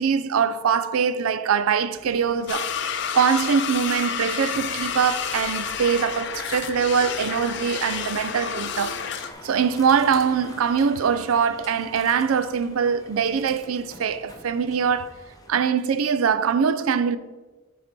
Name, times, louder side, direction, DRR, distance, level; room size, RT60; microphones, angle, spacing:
voice 1, 0.0-2.7 3.1-9.0 9.4-15.1 15.5-17.2, right 6 dB, 85° right, 0.4 m, -23 dB
sound 1, 1.9-15.5, left 2 dB, 15° left, 0.7 m, -47 dB
sound 2, 2.5-9.3, left 7 dB, 55° left, 0.5 m, -30 dB
7.7 x 4.8 x 4.4 m
head